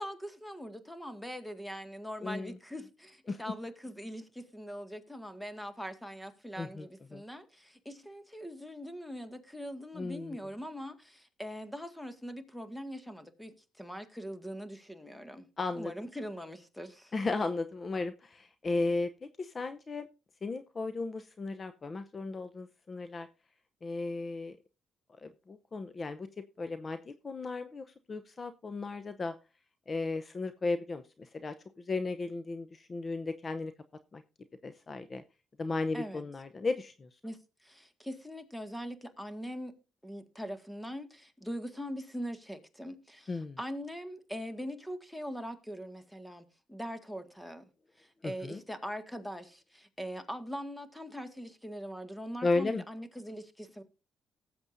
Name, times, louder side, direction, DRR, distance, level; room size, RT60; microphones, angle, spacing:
voice 1, 0.0-15.5 15.7-17.1 35.9-36.3 37.2-39.7 40.0-47.7 48.0-53.8, equal, 5° left, 1.9 m, -42 dB
voice 2, 2.2-2.6 3.3-3.4 6.6-6.9 7.1-7.2 10.0-10.4 15.6-15.9 17.1-20.1 20.4-23.3 23.8-24.6 25.2-26.3 26.6-29.3 29.9-31.5 31.9-33.7 34.1-34.2 34.6-35.2 35.6-37.1 43.3-43.6 48.2-48.6 52.4-52.8, left 3 dB, 35° left, 0.7 m, -35 dB
19.0 x 7.8 x 2.6 m
cardioid pair, 90°, 0 cm